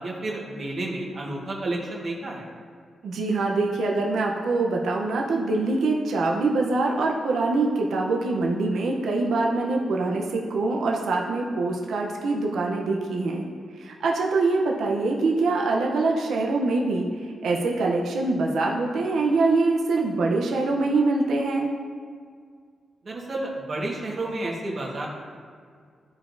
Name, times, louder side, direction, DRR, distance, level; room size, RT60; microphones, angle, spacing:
voice 1, 0.0-2.5 23.0-25.1, right 2 dB, 40° right, -2 dB, 1.5 m, -31 dB
voice 2, 3.0-13.5 13.8-17.0 17.4-21.7, right 3 dB, 80° right, -1 dB, 0.7 m, -24 dB
13.5 x 4.8 x 2.7 m, 2.1 s
wide cardioid pair, 130°, 0 cm